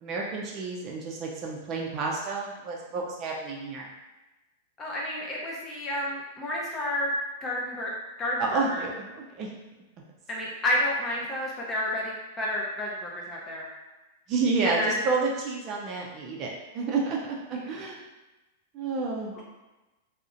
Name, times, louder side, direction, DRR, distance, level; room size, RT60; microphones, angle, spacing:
voice 1, 0.0-3.9 8.4-9.5 14.3-18.0 18.7-19.4, right 4 dB, 35° right, -2 dB, 0.4 m, -30 dB
voice 2, 4.8-7.1 7.4-7.9 8.2-8.9 10.3-13.7 14.7-15.0 17.7-17.8, left 1 dB, 20° left, -4 dB, 0.6 m, -30 dB
2.4 x 2.0 x 2.5 m, 1.1 s
hypercardioid pair, 125°, 0 cm